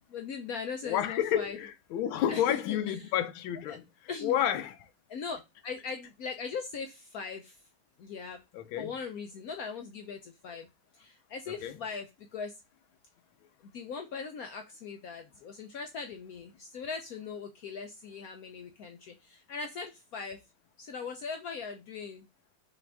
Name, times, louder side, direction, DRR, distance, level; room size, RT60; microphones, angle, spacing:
voice 1, 0.1-1.6 2.1-3.1 3.7-3.8 4.1-4.3 5.1-7.6 8.0-8.4 8.8-10.7 10.9-12.6 13.6-20.4 20.8-22.2, left 5 dB, 70° left, 0.8 m, -40 dB
voice 2, 0.8-3.8 4.2-4.7 8.5-8.9 11.6-11.8, left 10 dB, 90° left, 1.4 m, -30 dB
5.9 x 2.5 x 3.4 m
omnidirectional pair, 2.1 m